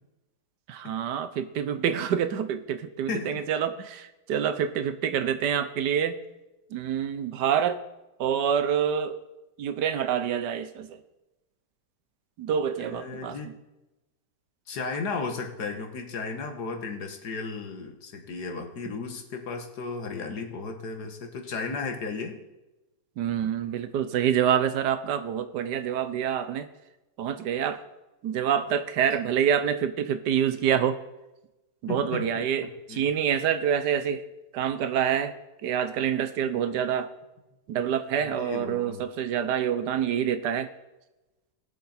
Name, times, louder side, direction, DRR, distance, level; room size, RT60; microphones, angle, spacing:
voice 1, 0.7-6.2 6.7-7.8 8.2-9.2 9.6-11.0 12.4-13.5 18.9-19.0 23.2-26.7 27.2-27.8 28.2-31.0 31.8-34.2 34.5-35.4 35.6-37.1 37.7-40.7, right 8 dB, 85° right, 10 dB, 1.4 m, -27 dB
voice 2, 3.1-3.5 12.8-13.5 14.7-22.4 31.9-32.4 32.9-33.0 36.4-36.5 38.0-39.1, left 4 dB, 75° left, 4 dB, 1.9 m, -35 dB
19.5 x 7.0 x 4.3 m, 1.0 s
omnidirectional pair, 1.8 m